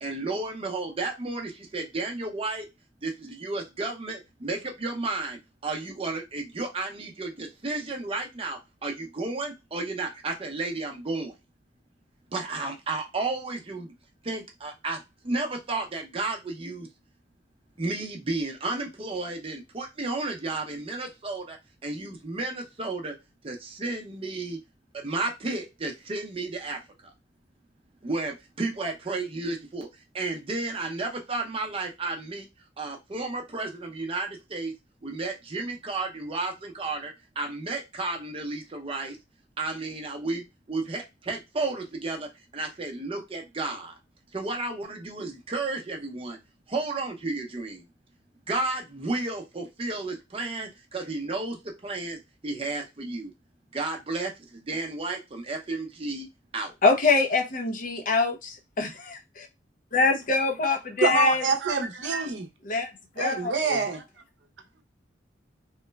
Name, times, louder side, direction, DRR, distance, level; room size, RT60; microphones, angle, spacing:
voice 1, 0.0-2.7 3.0-11.3 12.3-13.9 14.2-16.9 17.8-21.6 21.8-23.1 23.4-24.6 24.9-26.8 28.0-29.9 30.1-32.5 32.8-34.7 35.0-39.2 39.6-42.3 42.5-44.0 44.3-46.4 46.7-47.8 48.5-52.2 52.4-53.3 53.7-56.3 56.5-56.7, right 3 dB, 30° right, 0.6 m, -32 dB
voice 2, 56.8-59.5 59.9-61.4 62.6-62.9 63.2-63.8, left 3 dB, 45° left, 0.6 m, -24 dB
voice 3, 61.0-62.5 63.2-64.0, right 4 dB, 80° right, 0.6 m, -26 dB
3.0 x 2.1 x 2.2 m
head